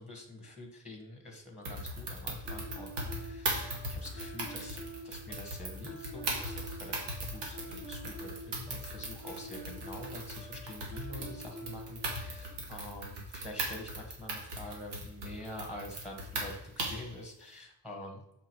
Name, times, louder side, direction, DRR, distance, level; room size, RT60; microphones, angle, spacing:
voice 1, 0.0-18.4, left 1 dB, ahead, 1 dB, 1.4 m, -46 dB
sound 1, 1.6-17.1, right 1 dB, 85° right, 2.1 m, -39 dB
sound 2, 2.5-12.5, right 1 dB, 45° right, 2.4 m, -47 dB
7.1 x 5.0 x 4.5 m, 0.85 s
cardioid pair, 155°, 41 cm